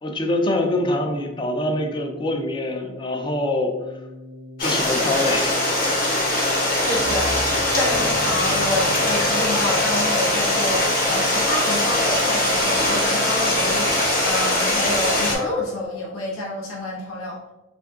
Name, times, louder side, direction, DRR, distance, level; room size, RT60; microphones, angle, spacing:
voice 1, 0.0-3.7 4.6-6.3, left 1 dB, 25° left, 4 dB, 0.3 m, -25 dB
Keyboard (musical), 0.7-15.8, equal, 60° right, 0.4 m, -38 dB
Stream, 4.6-15.4, left 1 dB, 45° left, 0.8 m, -21 dB
voice 2, 6.8-7.3 7.7-17.4, left 1 dB, 85° left, -3 dB, 0.6 m, -28 dB
sound 1, 6.9-11.7, equal, 10° right, 0.6 m, -37 dB
3.5 x 2.4 x 2.3 m, 1.1 s
head